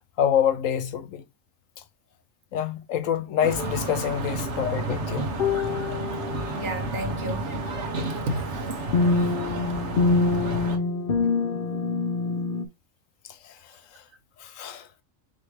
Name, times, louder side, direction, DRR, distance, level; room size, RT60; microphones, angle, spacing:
voice 1, 0.2-1.2 2.5-5.3 5.9-6.0 13.2-14.0 14.4-14.9, left 9 dB, 80° left, 1.1 m, -27 dB
sound 1, 3.4-10.8, right 2 dB, 60° right, 1.3 m, -31 dB
sound 2, 3.6-3.8 5.4-6.5 8.9-12.6, left 4 dB, 55° left, 0.7 m, -25 dB
voice 2, 6.5-7.6 7.9-9.2, equal, 85° right, 1.7 m, -34 dB
4.6 x 3.4 x 3.2 m
omnidirectional pair, 1.3 m